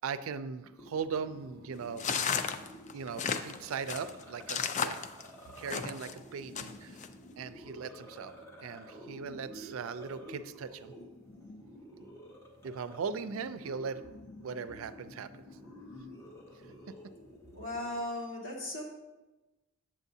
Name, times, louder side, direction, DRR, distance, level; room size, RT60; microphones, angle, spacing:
voice 1, 0.0-2.1 2.9-5.0 5.6-7.0 7.4-8.3 8.6-10.9 12.6-14.0 14.4-15.4 16.9-17.0, right 6 dB, 85° right, 13 dB, 0.4 m, -39 dB
sound 1, 0.8-18.0, equal, 15° left, 1.3 m, -51 dB
sound 2, 2.0-6.1 6.6-7.1, left 6 dB, 35° left, 0.3 m, -33 dB
voice 2, 17.5-18.8, left 1 dB, 75° left, -3 dB, 1.9 m, -37 dB
8.0 x 7.4 x 2.7 m, 1.1 s
head